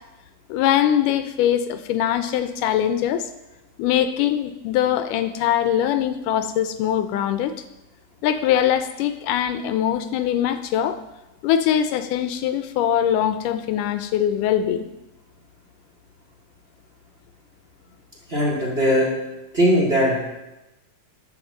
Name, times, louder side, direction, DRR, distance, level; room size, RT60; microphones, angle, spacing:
voice 1, 0.5-3.3 3.8-7.5 8.2-11.0 11.4-14.9, left 10 dB, 80° left, 11 dB, 2.1 m, -22 dB
voice 2, 18.3-19.1 19.5-20.3, equal, 20° right, -3 dB, 1.9 m, -19 dB
11.0 x 5.7 x 7.3 m, 0.97 s
omnidirectional pair, 3.8 m